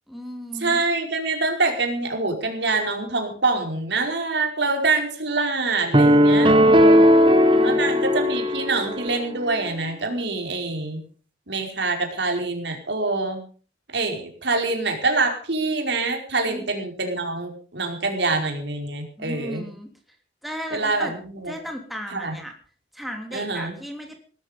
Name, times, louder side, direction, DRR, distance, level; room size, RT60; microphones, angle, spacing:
voice 1, 0.1-0.8 6.9-7.8 16.4-16.7 19.2-19.9 20.4-21.1 21.5-22.5 22.9-24.2, equal, ahead, 2 dB, 3.3 m, -35 dB
voice 2, 0.6-7.0 7.6-11.0 11.5-13.4 13.9-19.7 20.7-21.5 22.1-22.3 23.3-23.7, right 3 dB, 75° right, 3 dB, 5.0 m, -25 dB
sound 1, 5.9-9.2, equal, 30° right, 1.5 m, -16 dB
19.0 x 14.0 x 5.3 m, 0.40 s
head